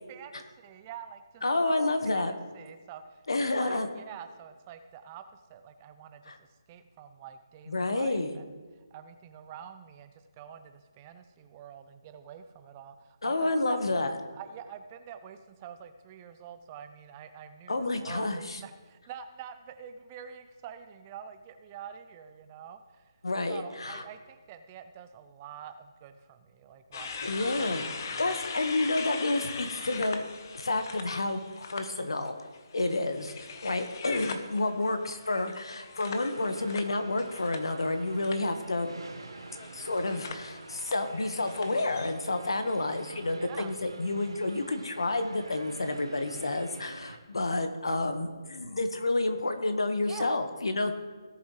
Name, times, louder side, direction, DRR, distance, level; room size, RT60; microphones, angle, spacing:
voice 1, 0.1-3.3 3.6-8.6 8.9-13.8 14.3-23.1 23.5-28.4 43.3-43.7 50.0-50.3 50.8-50.9, right 8 dB, 25° right, 9 dB, 0.5 m, -47 dB
voice 2, 1.4-2.3 3.3-3.9 6.3-6.4 7.7-8.3 13.2-14.2 17.7-18.6 23.2-24.0 27.2-30.2 30.5-32.4 32.7-38.9 39.7-50.9, left 2 dB, 75° left, 7 dB, 1.4 m, -30 dB
sound 1, 26.9-31.8 32.2-37.9 38.2-38.5 39.4-42.1, left 5 dB, 45° left, 1.0 m, -41 dB
sound 2, 36.3-47.2, right 3 dB, 80° right, 1.7 m, -48 dB
17.5 x 7.0 x 3.2 m, 1.3 s
figure-of-eight pair, 150°, 3 cm